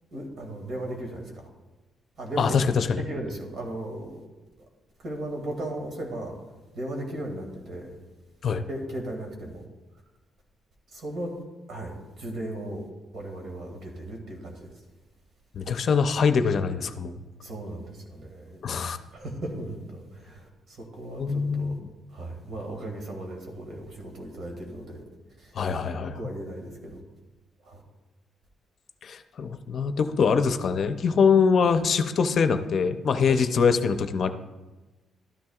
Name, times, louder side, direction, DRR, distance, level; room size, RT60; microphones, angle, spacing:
voice 1, 0.1-1.2 2.2-4.2 5.0-6.3 6.8-8.0 8.7-9.6 10.9-11.3 11.7-11.9 12.2-12.8 13.1-14.7 17.4-18.6 19.1-20.4 21.0-21.7 22.1-25.0 25.8-27.0 27.7-27.8 33.3-33.4, right 1 dB, 60° right, 1 dB, 2.2 m, -36 dB
voice 2, 2.4-3.0 8.4-8.6 15.5-17.2 18.6-19.0 21.2-21.8 25.5-26.2 29.0-34.3, left 5 dB, 55° left, 9 dB, 0.6 m, -23 dB
12.5 x 10.5 x 2.4 m, 1.2 s
cardioid pair, 90°, 0 cm